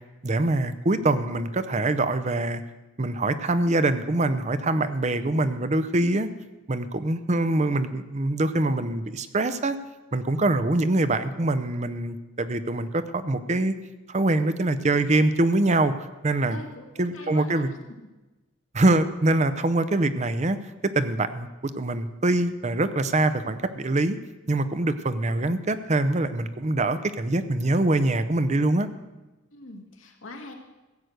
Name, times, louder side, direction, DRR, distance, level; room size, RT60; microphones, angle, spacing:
voice 1, 0.2-2.6 3.0-6.3 6.7-9.8 10.1-13.8 14.1-16.6 17.0-17.7 18.7-21.5 21.8-24.2 24.5-28.9, right 2 dB, 35° right, 11 dB, 0.7 m, -24 dB
voice 2, 16.5-17.8 29.5-30.5, left 2 dB, 85° left, 2 dB, 2.1 m, -42 dB
15.5 x 8.0 x 6.5 m, 1.1 s
head